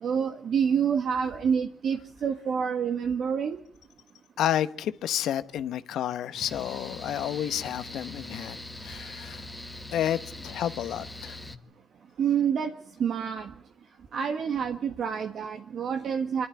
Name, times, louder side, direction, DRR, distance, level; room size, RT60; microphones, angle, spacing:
voice 1, 0.0-3.6 12.2-12.7 13.0-13.5 14.1-16.5, right 7 dB, 60° right, 5 dB, 1.5 m, -27 dB
voice 2, 4.4-9.4 9.9-11.4, left 11 dB, 75° left, 13 dB, 1.0 m, -30 dB
Mechanical fan, 6.3-11.6, left 1 dB, 10° left, 1.3 m, -42 dB
25.0 x 12.0 x 9.3 m, 0.71 s
cardioid pair, 90°, 0 cm